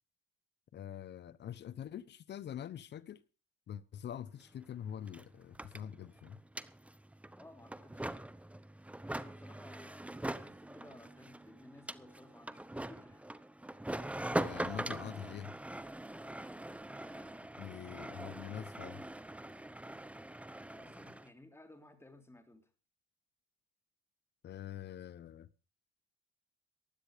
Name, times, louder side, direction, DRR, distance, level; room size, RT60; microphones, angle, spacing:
voice 1, 0.7-3.2 3.7-6.4 14.3-15.5 17.6-19.0 24.4-25.5, left 9 dB, 60° left, 0.9 m, -45 dB
sound 1, 4.4-4.5 4.7-21.3, right 1 dB, 5° right, 0.9 m, -43 dB
voice 2, 7.4-8.3 9.0-13.2 16.8-18.2 20.7-22.7, left 1 dB, 10° left, 3.2 m, -58 dB
15.5 x 11.5 x 5.0 m
cardioid pair, 90°, 20 cm